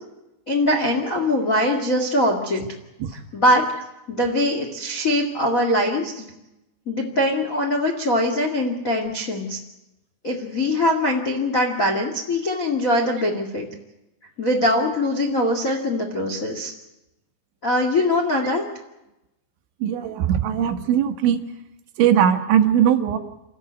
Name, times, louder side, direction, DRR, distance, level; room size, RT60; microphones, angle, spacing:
voice 1, 0.5-2.6 3.3-3.6 4.1-6.2 6.8-9.6 10.2-13.6 14.4-16.7 17.6-18.6, left 1 dB, 70° left, 2 dB, 0.7 m, -22 dB
voice 2, 19.8-21.4 22.0-23.2, right 9 dB, 75° right, 5 dB, 3.7 m, -19 dB
29.5 x 13.5 x 8.1 m, 0.94 s
omnidirectional pair, 5.5 m